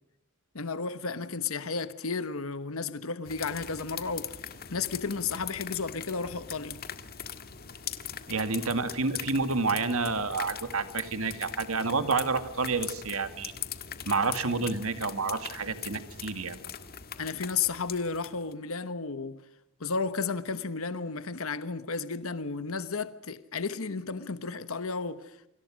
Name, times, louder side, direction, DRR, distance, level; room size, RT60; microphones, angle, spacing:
voice 1, 0.5-6.8 17.2-19.4 19.8-25.5, left 4 dB, 65° left, 1.1 m, -33 dB
sound 1, 3.3-18.5, left 9 dB, 45° left, 1.7 m, -41 dB
voice 2, 8.3-13.5 14.1-16.6, right 4 dB, 70° right, 2.1 m, -29 dB
29.0 x 26.0 x 6.4 m
head